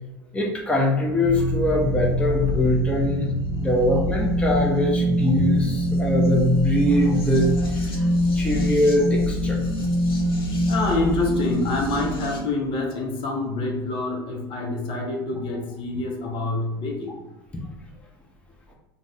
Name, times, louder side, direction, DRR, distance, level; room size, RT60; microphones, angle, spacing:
voice 1, 0.3-3.3 3.6-7.5 8.0-8.1 8.3-9.6, left 1 dB, 10° left, -1 dB, 0.6 m, -22 dB
sound 1, 1.2-12.4, left 1 dB, 80° left, 0.7 m, -24 dB
voice 2, 2.1-2.6 3.4-3.6 10.7-17.2, left 2 dB, 45° left, 0 dB, 0.7 m, -27 dB
2.5 x 2.1 x 3.3 m, 0.95 s
hypercardioid pair, 80°, 12 cm